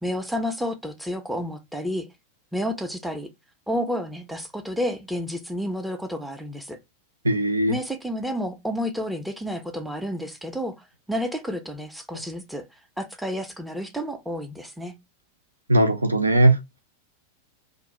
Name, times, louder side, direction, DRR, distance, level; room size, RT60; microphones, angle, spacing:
voice 1, 0.0-2.1 2.5-3.3 3.7-6.8 7.7-12.6 13.0-14.9, equal, 5° right, 0.4 m, -30 dB
voice 2, 7.2-7.7 15.7-16.6, right 1 dB, 80° right, 0.3 m, -19 dB
2.4 x 2.0 x 2.8 m
figure-of-eight pair, 90°, 0 cm